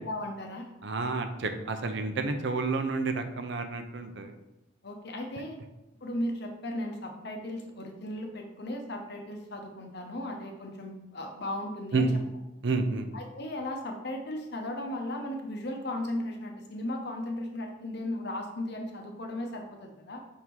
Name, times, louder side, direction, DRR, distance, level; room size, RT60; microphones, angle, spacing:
voice 1, 0.0-0.7 4.8-5.6 6.0-12.1 13.1-20.2, left 1 dB, 55° left, 3 dB, 0.9 m, -36 dB
voice 2, 0.8-4.3 11.9-12.1 12.6-13.1, right 3 dB, 60° right, 7 dB, 0.6 m, -30 dB
5.6 x 3.6 x 4.6 m, 0.95 s
head